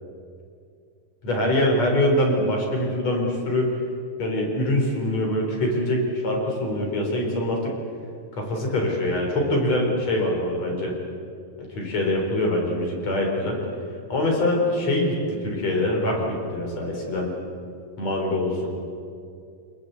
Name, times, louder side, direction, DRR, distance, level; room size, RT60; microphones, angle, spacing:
voice 1, 1.2-3.7 4.2-7.7 8.3-11.0 11.6-13.6 14.1-17.3 18.0-18.7, left 1 dB, 50° left, 0 dB, 5.2 m, -24 dB
26.5 x 21.0 x 8.3 m, 2.4 s
omnidirectional pair, 4.1 m